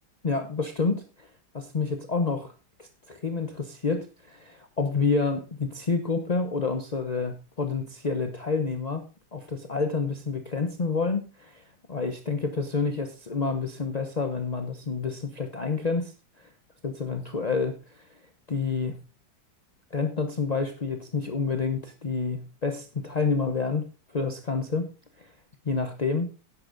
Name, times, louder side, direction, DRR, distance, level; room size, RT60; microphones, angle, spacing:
voice 1, 0.2-1.3 1.5-2.5 2.8-9.0 9.3-11.6 11.9-16.1 16.4-16.5 16.8-18.1 18.5-19.0 19.9-23.9 24.1-24.9 25.2-25.3 25.6-26.3, left 4 dB, 40° left, 6 dB, 0.5 m, -28 dB
11.0 x 9.7 x 3.9 m, 0.32 s
omnidirectional pair, 2.1 m